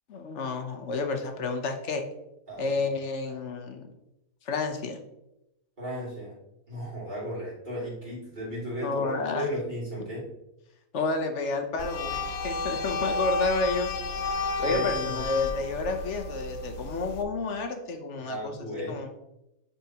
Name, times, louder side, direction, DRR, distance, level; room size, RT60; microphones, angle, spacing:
voice 1, 0.1-2.0 2.6-3.8 4.5-5.0 8.8-9.5 10.9-13.9 14.6-19.1, left 3 dB, 60° left, 6 dB, 1.0 m, -30 dB
voice 2, 2.5-2.8 5.8-6.3 6.7-10.3 12.7-12.8 14.4-15.3 18.2-19.0, equal, 35° right, -7 dB, 2.8 m, -35 dB
sound 1, 11.8-17.2, left 3 dB, 85° left, 1.1 m, -32 dB
9.2 x 4.3 x 2.9 m, 0.89 s
omnidirectional pair, 1.5 m